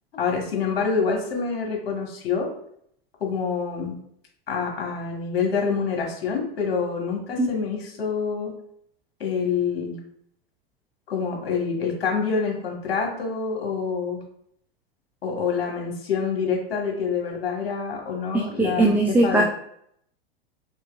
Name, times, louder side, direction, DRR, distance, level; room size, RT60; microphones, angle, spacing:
voice 1, 0.1-2.5 3.2-3.9 4.5-8.5 9.2-10.0 11.1-14.2 15.2-19.4, left 5 dB, 70° left, 0 dB, 1.6 m, -26 dB
voice 2, 18.3-19.4, right 2 dB, 5° right, 0 dB, 0.3 m, -20 dB
4.9 x 3.5 x 2.5 m, 0.69 s
hypercardioid pair, 95°, 30 cm